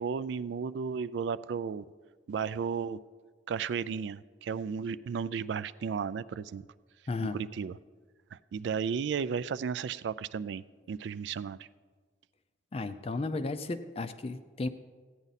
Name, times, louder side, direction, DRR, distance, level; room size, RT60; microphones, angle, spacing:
voice 1, 0.0-1.8 2.3-3.0 3.5-6.6 7.3-7.7 8.3-11.7, right 6 dB, 65° right, 17 dB, 0.3 m, -34 dB
voice 2, 7.1-7.4 12.7-14.7, left 3 dB, 30° left, 10 dB, 0.4 m, -34 dB
15.5 x 9.1 x 4.1 m, 1.5 s
head